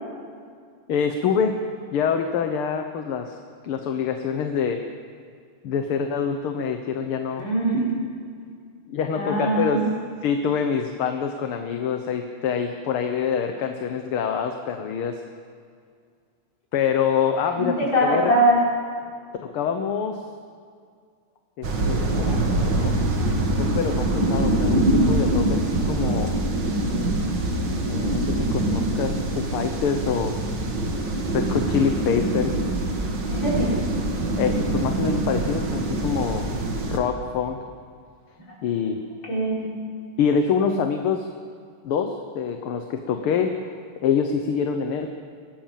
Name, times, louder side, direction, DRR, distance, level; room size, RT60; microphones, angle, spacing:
voice 1, 0.9-1.6 1.9-3.4 3.6-4.8 5.6-7.5 8.9-9.8 10.2-15.2 16.7-18.3 19.4-20.2 21.6-22.9 23.6-26.3 27.8-30.4 31.3-32.5 34.4-36.5 36.9-37.6 38.6-39.0 40.2-41.3 41.8-45.1, left 7 dB, 80° left, 5 dB, 2.0 m, -25 dB
voice 2, 7.4-7.8 9.1-9.8 17.6-18.6 33.3-33.8 39.3-39.6, right 1 dB, 60° left, -5 dB, 6.7 m, -22 dB
sound 1, 21.6-37.0, right 2 dB, 55° right, 2.7 m, -24 dB
25.0 x 18.5 x 7.5 m, 2.2 s
omnidirectional pair, 2.4 m